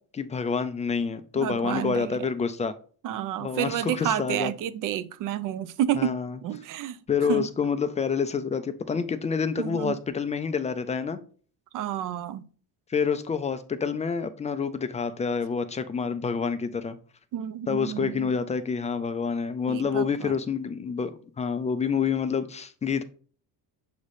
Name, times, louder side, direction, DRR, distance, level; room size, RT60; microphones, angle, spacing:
voice 1, 0.1-2.7 3.4-4.5 6.0-6.4 7.1-11.2 12.9-17.0 17.7-23.0, left 6 dB, 20° left, 0.3 m, -28 dB
voice 2, 1.3-2.1 3.0-6.1 6.4-7.0 7.3-7.5 9.6-10.0 11.7-12.5 17.3-18.3 19.7-20.4, right 11 dB, 50° right, 0.5 m, -30 dB
7.1 x 3.2 x 4.0 m
cardioid pair, 140°, 43 cm